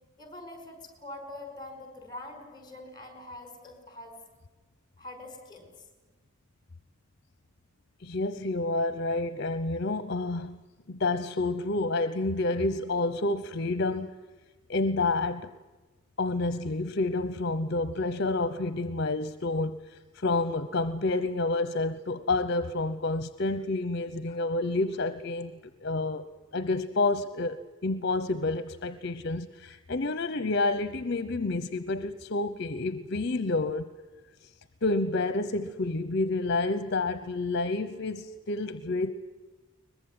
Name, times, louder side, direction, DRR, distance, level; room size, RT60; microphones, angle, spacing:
voice 1, 0.2-4.2 5.0-5.7 24.3-24.4, left 1 dB, 20° left, 5.2 m, -44 dB
voice 2, 8.0-10.6 10.9-14.1 14.7-15.5 16.2-25.5 25.8-26.2 26.5-33.9 34.8-39.1, left 2 dB, 55° left, 0.9 m, -29 dB
23.0 x 21.0 x 9.5 m
head